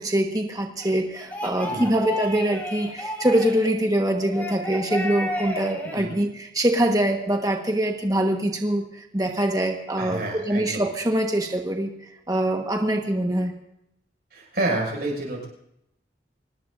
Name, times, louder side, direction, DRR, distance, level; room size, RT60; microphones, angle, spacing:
voice 1, 0.0-11.9 12.3-13.5, right 1 dB, 20° right, 3 dB, 1.3 m, -24 dB
sound 1, 0.8-3.7 4.2-6.0, left 1 dB, 10° left, 3.4 m, -32 dB
voice 2, 5.8-6.2 10.0-10.8 14.3-15.5, right 2 dB, 55° right, -1 dB, 6.2 m, -29 dB
24.5 x 19.0 x 2.6 m, 0.80 s
head